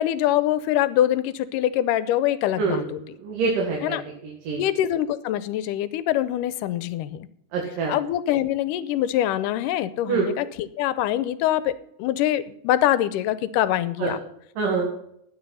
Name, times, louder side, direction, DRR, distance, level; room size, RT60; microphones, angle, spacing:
voice 1, 0.0-3.2 3.8-4.0 4.6-7.3 7.9-11.7 12.0-14.2, left 12 dB, 90° left, 15 dB, 2.2 m, -24 dB
voice 2, 2.6-4.0 4.5-4.6 7.5-7.9 10.1-10.3 14.0-14.1 14.6-14.9, right 4 dB, 90° right, -1 dB, 3.6 m, -25 dB
13.0 x 9.3 x 5.6 m, 0.72 s
omnidirectional pair, 3.7 m